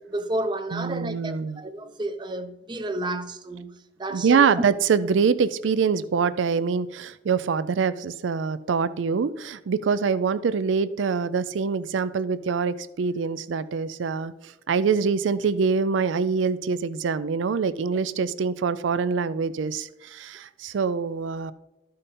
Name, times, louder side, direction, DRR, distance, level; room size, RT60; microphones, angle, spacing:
voice 1, 0.0-4.5, right 1 dB, 25° right, 0.6 m, -31 dB
voice 2, 0.7-1.6 4.1-21.5, right 5 dB, 85° right, 0.4 m, -24 dB
13.0 x 5.2 x 4.2 m
head